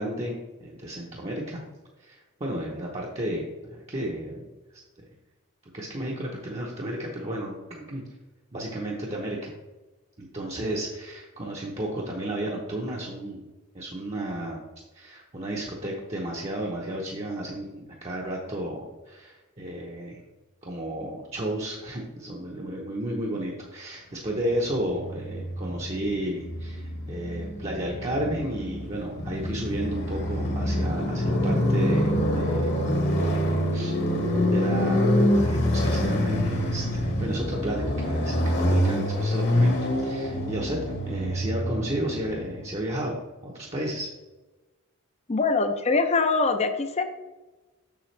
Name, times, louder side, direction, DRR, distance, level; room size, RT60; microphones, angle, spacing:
voice 1, 0.0-1.6 2.0-4.4 5.7-8.0 8.5-9.5 10.2-13.4 13.7-14.6 14.9-20.2 20.6-32.7 33.2-34.0 34.5-40.8 41.1-43.2 43.4-44.1, right 1 dB, 30° right, -3 dB, 0.8 m, -33 dB
Motorcycle, 24.5-42.7, equal, 50° left, 1.3 m, -26 dB
voice 2, 45.3-47.0, left 3 dB, 30° left, 8 dB, 0.5 m, -23 dB
7.0 x 6.8 x 3.3 m, 1.2 s
head